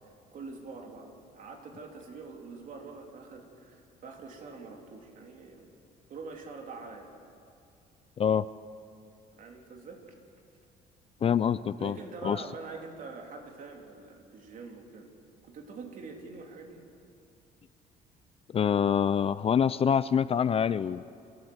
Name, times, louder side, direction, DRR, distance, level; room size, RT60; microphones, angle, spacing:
voice 1, 0.0-5.7 6.1-7.1 9.3-10.0 11.8-15.1 15.4-16.8, right 4 dB, 50° right, 2 dB, 3.3 m, -45 dB
voice 2, 11.2-12.0 12.2-12.4 18.5-21.1, left 8 dB, 35° left, 16 dB, 0.4 m, -25 dB
27.0 x 14.0 x 8.0 m, 2.5 s
cardioid pair, 110°, 17 cm